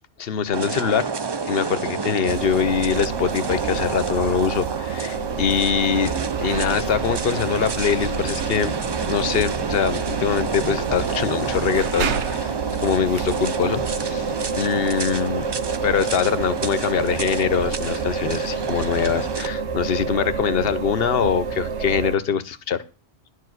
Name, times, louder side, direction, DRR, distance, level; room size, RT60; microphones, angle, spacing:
voice 1, 0.2-1.1 1.4-6.1 6.4-8.7 9.1-15.5 15.8-22.8, left 7 dB, 60° left, 15 dB, 0.9 m, -23 dB
sound 1, 0.5-19.5, right 5 dB, 40° right, 0.3 m, -29 dB
sound 2, 2.3-22.2, right 5 dB, 80° right, 1.1 m, -29 dB
11.0 x 4.8 x 7.8 m, 0.35 s
omnidirectional pair, 1.2 m